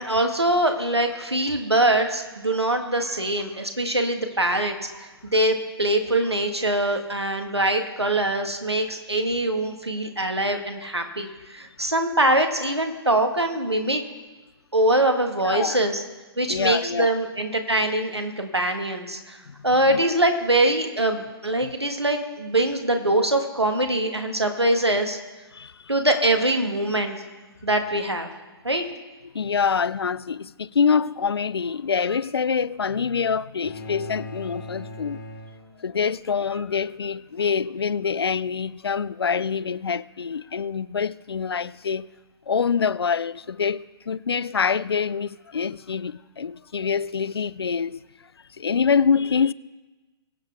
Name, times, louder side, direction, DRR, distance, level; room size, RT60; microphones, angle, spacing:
voice 1, 0.0-14.0 14.7-16.0 16.4-19.4 19.6-25.2 25.9-27.2 27.6-28.3 28.6-28.8, right 1 dB, 85° right, 1.5 m, -23 dB
voice 2, 15.4-15.8 16.5-17.1 19.5-20.2 21.6-21.7 25.5-25.9 29.2-35.2 35.8-42.1 42.5-48.0 48.6-49.5, left 6 dB, 70° left, 0.4 m, -25 dB
sound 1, 33.6-36.2, left 1 dB, 50° left, 1.9 m, -39 dB
22.0 x 8.0 x 3.4 m
figure-of-eight pair, 125°, 13 cm